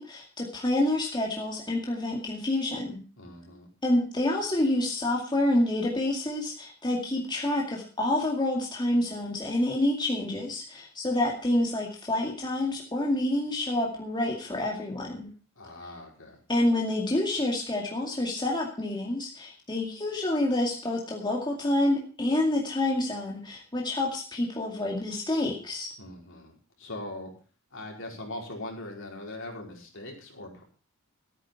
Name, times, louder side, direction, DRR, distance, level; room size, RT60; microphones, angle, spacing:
voice 1, 0.0-3.0 3.8-15.3 16.5-25.9, left 1 dB, 20° left, -1 dB, 2.2 m, -28 dB
voice 2, 3.2-3.7 15.6-16.4 26.0-27.3 27.7-30.6, left 1 dB, 60° left, 0 dB, 4.8 m, -41 dB
15.0 x 9.2 x 5.8 m, 0.39 s
head